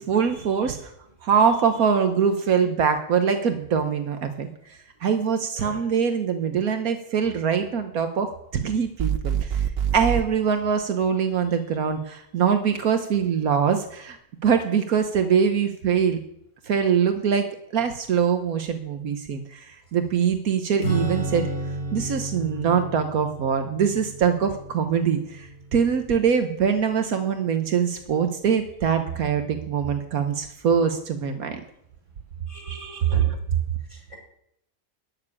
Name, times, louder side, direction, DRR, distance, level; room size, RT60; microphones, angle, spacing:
voice 1, 0.1-0.8 1.2-9.6 9.9-14.2 14.4-16.2 16.7-17.5 17.7-21.5 21.9-31.6 32.7-33.4, right 7 dB, 80° right, 7 dB, 1.5 m, -23 dB
sound 1, 9.0-10.3, right 8 dB, 55° right, 0.8 m, -25 dB
Acoustic guitar / Strum, 20.8-26.7, right 1 dB, 80° left, 6.1 m, -33 dB
voice 2, 32.5-33.3 33.9-34.2, equal, 20° right, -1 dB, 5.1 m, -41 dB
14.0 x 7.0 x 9.9 m, 0.75 s
omnidirectional pair, 1.5 m